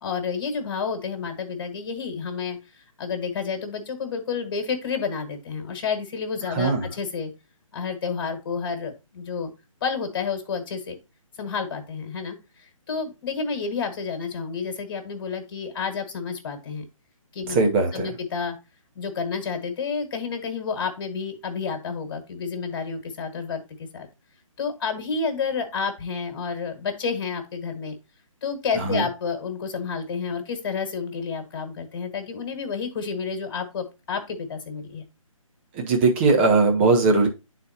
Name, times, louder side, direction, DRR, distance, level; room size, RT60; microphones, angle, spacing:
voice 1, 0.0-7.3 7.7-9.5 9.8-11.0 11.4-16.8 17.3-17.6 17.9-18.6 18.9-24.1 24.6-27.9 28.4-35.0, left 5 dB, 40° left, 6 dB, 1.7 m, -30 dB
voice 2, 6.5-6.9 17.5-18.2 28.7-29.1 35.7-37.3, right 3 dB, 20° right, 3 dB, 1.0 m, -20 dB
10.5 x 4.1 x 2.8 m, 0.26 s
figure-of-eight pair, 155°, 18 cm